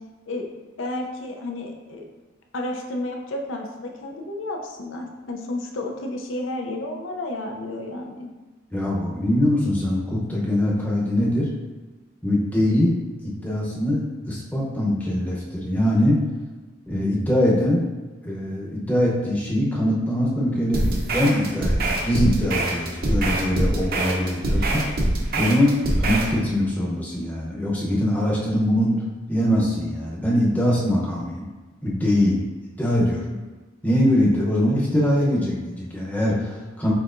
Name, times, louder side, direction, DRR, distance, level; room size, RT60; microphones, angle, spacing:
voice 1, 0.8-2.1 2.5-8.3, left 1 dB, 80° left, 2 dB, 0.6 m, -31 dB
voice 2, 8.7-11.5 12.2-12.9 13.2-16.2 16.9-17.9 18.2-25.0 25.4-29.0 29.3-31.5 31.8-32.4 32.8-33.4 33.8-36.9, left 1 dB, 10° left, -4 dB, 0.7 m, -22 dB
sound 1, 20.7-26.3, right 1 dB, 50° right, 0.6 m, -24 dB
6.4 x 2.9 x 2.5 m, 1.2 s
head